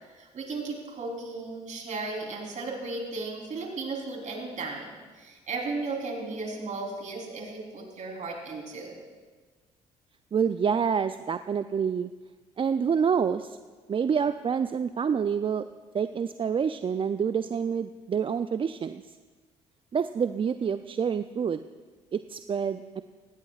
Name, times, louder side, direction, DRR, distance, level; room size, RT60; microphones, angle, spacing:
voice 1, 0.1-9.0, right 3 dB, 50° right, 0 dB, 3.8 m, -35 dB
voice 2, 10.3-12.1 12.6-13.6 13.9-15.6 15.9-19.2 19.9-21.6 22.1-23.0, right 7 dB, 35° right, 11 dB, 0.4 m, -27 dB
17.0 x 15.5 x 2.5 m, 1.4 s
hypercardioid pair, 55°, 16 cm